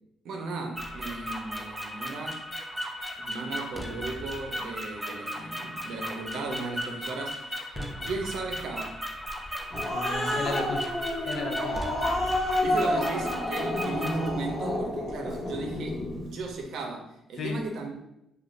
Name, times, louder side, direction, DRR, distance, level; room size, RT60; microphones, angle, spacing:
voice 1, 0.2-2.4 3.2-7.5 8.0-9.0 10.1-10.4 12.6-17.9, right 3 dB, 75° right, 3 dB, 0.5 m, -36 dB
sound 1, 0.8-14.3, equal, 5° right, 0.4 m, -36 dB
Growling, 9.4-16.2, left 1 dB, 30° left, 1.0 m, -30 dB
voice 2, 9.9-11.0 11.3-11.9 17.4-17.6, left 3 dB, 60° left, 4 dB, 0.4 m, -34 dB
2.5 x 2.2 x 3.0 m, 0.84 s
cardioid pair, 90°, 0 cm